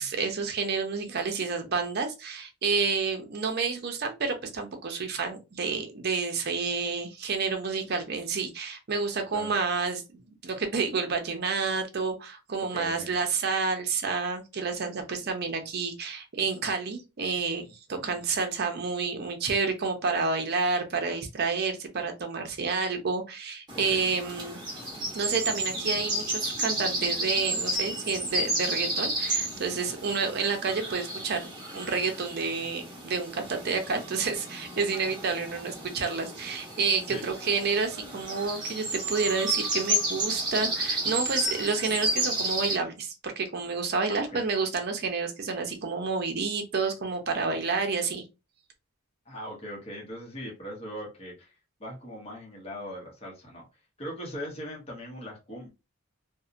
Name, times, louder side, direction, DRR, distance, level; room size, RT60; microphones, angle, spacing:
voice 1, 0.0-24.6 25.1-48.2, right 4 dB, 50° right, 0.5 m, -29 dB
voice 2, 12.6-13.2 18.0-18.2 23.7-24.0 30.0-30.1 37.1-37.2 44.1-44.4 49.2-51.5 51.8-53.6 54.0-55.7, equal, 30° left, 0.8 m, -40 dB
sound 1, 23.7-42.8, right 1 dB, 20° right, 0.9 m, -32 dB
2.7 x 2.0 x 2.4 m
head